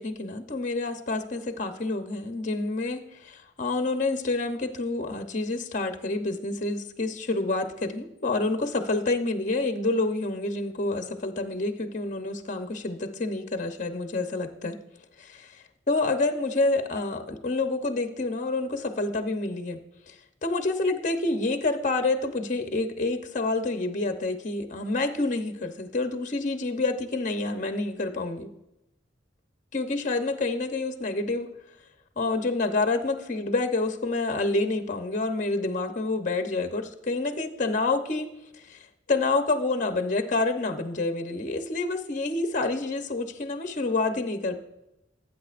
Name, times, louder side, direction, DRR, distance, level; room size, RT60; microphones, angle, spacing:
voice 1, 0.0-14.8 15.2-15.4 15.9-19.8 20.1-20.2 20.4-28.5 29.7-31.5 32.2-38.3 38.6-44.6, left 2 dB, 45° left, 6 dB, 0.9 m, -28 dB
19.0 x 8.7 x 2.5 m, 0.89 s
head